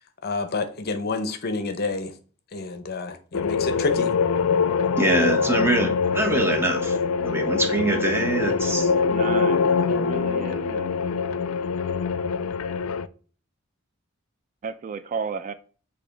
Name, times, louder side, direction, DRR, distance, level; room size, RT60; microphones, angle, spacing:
voice 1, 0.2-2.1 2.5-4.1, left 3 dB, 50° left, 0.7 m, -28 dB
sound 1, 3.3-13.1, left 5 dB, 85° left, 0.4 m, -24 dB
sound 2, 3.6-10.6, right 2 dB, 65° right, 1.0 m, -40 dB
voice 2, 5.0-8.9, right 1 dB, 10° right, 1.0 m, -24 dB
voice 3, 9.1-11.0 14.6-15.5, right 5 dB, 40° right, 0.3 m, -33 dB
6.5 x 2.8 x 5.1 m
head